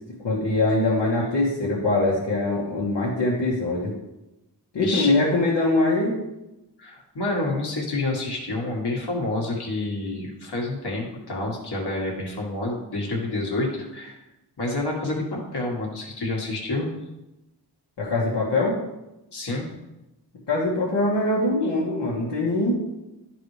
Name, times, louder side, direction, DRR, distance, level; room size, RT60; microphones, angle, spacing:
voice 1, 0.2-3.9 4.7-6.1 18.0-18.8 20.5-22.8, left 2 dB, 85° left, -7 dB, 1.6 m, -23 dB
voice 2, 4.8-5.1 6.8-14.2 14.6-16.9 19.3-19.7, left 2 dB, 65° left, -2 dB, 1.7 m, -28 dB
11.0 x 3.9 x 3.3 m, 0.96 s
wide cardioid pair, 60°, 42 cm